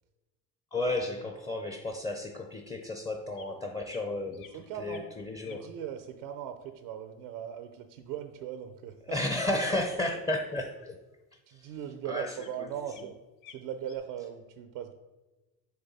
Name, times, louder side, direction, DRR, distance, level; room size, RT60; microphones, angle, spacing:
voice 1, 0.7-5.7 9.1-11.0 11.5-11.7 12.1-12.7, left 1 dB, 15° left, 3 dB, 0.5 m, -33 dB
sound 1, 1.9-2.0 3.3-3.5 3.8-4.0 4.3-5.1 5.4-5.7 10.6-10.8 11.1-11.2 11.9-12.0 12.4-12.5 12.9-13.1 13.4-14.0, left 8 dB, 80° left, 0.8 m, -54 dB
voice 2, 4.5-5.0 5.4-9.2 11.5-13.2 13.5-14.9, right 9 dB, 75° right, 8 dB, 0.6 m, -39 dB
7.0 x 3.4 x 4.1 m, 1.1 s
hypercardioid pair, 70°, 44 cm